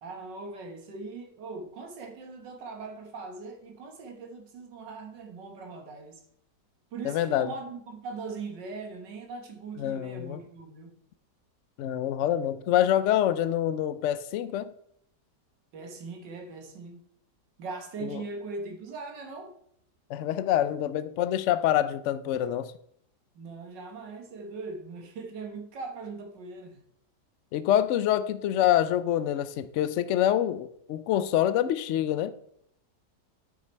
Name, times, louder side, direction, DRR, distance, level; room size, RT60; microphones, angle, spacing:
voice 1, 0.0-6.2 6.9-10.9 15.7-17.0 17.6-19.5 23.4-26.8, right 3 dB, 85° right, 2.0 m, -40 dB
voice 2, 7.0-7.5 9.8-10.4 11.8-14.7 18.0-18.2 20.1-22.7 27.5-32.3, left 11 dB, 80° left, 0.6 m, -26 dB
9.9 x 6.0 x 4.4 m
omnidirectional pair, 1.9 m